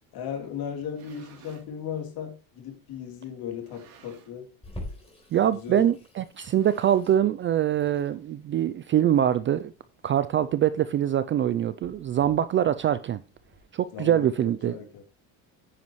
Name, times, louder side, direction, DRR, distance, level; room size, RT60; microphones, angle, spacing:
voice 1, 0.1-4.5 5.6-5.9 13.9-15.0, left 8 dB, 55° left, 3.5 m, -36 dB
sound 1, 0.8-1.7 2.5-2.6 3.5-4.5 4.8-5.1 5.3-5.4 6.3-7.4, right 6 dB, 60° right, 3.2 m, -54 dB
Water tap faucet / Sink (filling or washing), 4.6-13.6, left 1 dB, 15° left, 4.1 m, -47 dB
voice 2, 5.3-9.7 10.0-13.2 13.7-14.8, right 10 dB, 30° right, 0.4 m, -24 dB
9.9 x 9.3 x 3.1 m
cardioid pair, 125°, 43 cm